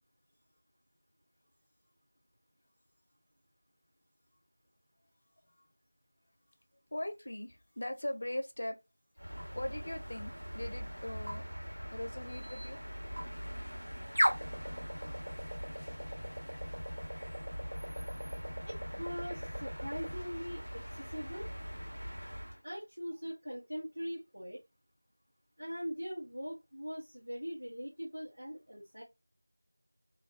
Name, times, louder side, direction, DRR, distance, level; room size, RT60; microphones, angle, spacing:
voice 1, 6.9-8.8 9.5-11.4 11.9-12.8, left 1 dB, 30° left, 0.4 m, -40 dB
sound 1, 9.2-22.6, equal, 80° right, 1.3 m, -39 dB
voice 2, 18.7-21.5 22.6-24.6 25.6-29.0, equal, 55° right, 0.9 m, -41 dB
2.3 x 2.2 x 2.5 m
figure-of-eight pair, 175°, 0 cm